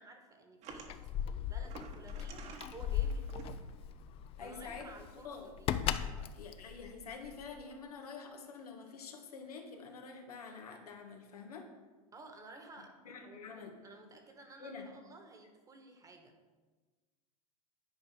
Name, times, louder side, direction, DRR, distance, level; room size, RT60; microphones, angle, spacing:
voice 1, 0.0-3.7 4.4-5.7 6.0-6.3 12.1-16.4, right 2 dB, 20° right, 4 dB, 1.3 m, -54 dB
sound 1, 0.6-0.9 1.7-2.7 3.1-3.5 4.5-4.6 4.9-5.0, right 5 dB, 35° right, 1.2 m, -49 dB
Keys jangling, 0.7-7.6, left 9 dB, 30° left, 0.4 m, -38 dB
voice 2, 4.4-5.5 6.3-11.7 12.8-13.7 14.6-14.9, left 5 dB, 90° left, 2 dB, 1.6 m, -47 dB
10.0 x 4.7 x 4.9 m, 1.3 s
hypercardioid pair, 120°, 19 cm